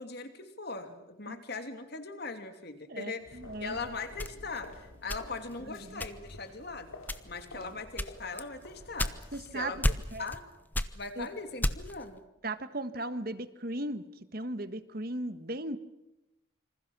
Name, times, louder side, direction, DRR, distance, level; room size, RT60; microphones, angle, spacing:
voice 1, 0.0-6.9 7.2-9.1 9.5-9.9 10.2-10.4 11.0-12.2, left 4 dB, 50° left, 7 dB, 3.0 m, -40 dB
voice 2, 2.9-3.8 5.6-6.0 7.5-7.8 9.3-9.8 10.1-10.3 11.2-11.3 12.4-14.0 14.3-15.8, right 1 dB, 45° right, 11 dB, 1.5 m, -37 dB
sound 1, 3.2-10.2, left 1 dB, 85° left, 3.3 m, -51 dB
sound 2, 4.2-5.6 6.0-6.5 7.0-7.5 8.0-9.5 9.8-10.4 10.7-12.0, left 1 dB, 10° left, 1.0 m, -32 dB
27.0 x 26.0 x 6.2 m, 0.93 s
head